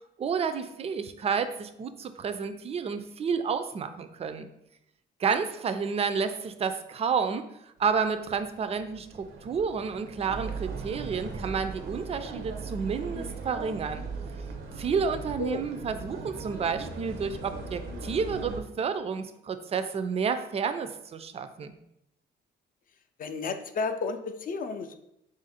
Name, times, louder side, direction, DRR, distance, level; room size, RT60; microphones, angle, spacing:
voice 1, 0.2-4.5 5.2-7.5 7.8-14.0 14.8-21.7, right 6 dB, 30° right, 9 dB, 0.4 m, -30 dB
sound 1, 7.8-18.6, right 4 dB, 80° right, 0.6 m, -39 dB
voice 2, 23.2-24.9, left 4 dB, 45° left, 8 dB, 0.4 m, -32 dB
3.5 x 2.5 x 4.1 m, 0.79 s
cardioid pair, 90°, 20 cm